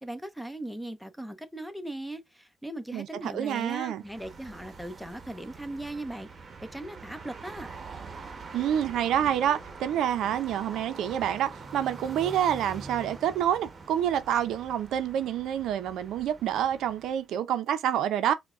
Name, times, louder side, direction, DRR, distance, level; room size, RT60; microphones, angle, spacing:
voice 1, 0.0-6.3 6.6-7.7, right 1 dB, ahead, 0.6 m, -38 dB
voice 2, 2.9-4.0 8.5-18.3, right 10 dB, 80° right, 0.5 m, -28 dB
sound 1, 4.0-17.3, right 4 dB, 40° right, 0.9 m, -44 dB
4.5 x 2.1 x 2.4 m
cardioid pair, 90°, 0 cm